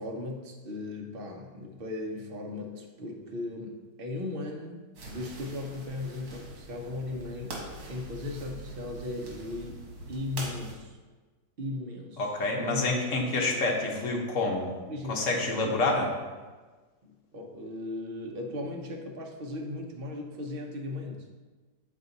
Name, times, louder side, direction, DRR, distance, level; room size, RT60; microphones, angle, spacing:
voice 1, 0.0-7.6 7.9-11.0 11.6-12.2 12.6-13.0 13.5-13.6 13.9-14.1 14.9-15.3 15.6-15.7 17.0-21.4, left 2 dB, 55° right, 1 dB, 0.6 m, -37 dB
sound 1, 4.9-10.7, right 2 dB, 90° right, 2.0 m, -43 dB
voice 2, 12.2-14.7 15.1-16.1, left 2 dB, 50° left, 0 dB, 1.1 m, -28 dB
7.4 x 4.0 x 4.0 m, 1.3 s
omnidirectional pair, 1.9 m